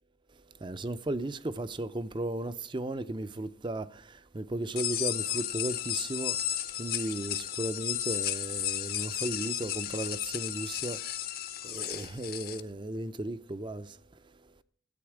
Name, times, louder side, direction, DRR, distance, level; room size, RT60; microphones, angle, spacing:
voice 1, 0.6-6.4 6.8-11.0 11.6-14.0, right 1 dB, 25° right, 0.5 m, -35 dB
sound 1, 4.8-12.6, left 11 dB, 55° left, 0.8 m, -34 dB
13.5 x 8.7 x 4.9 m
head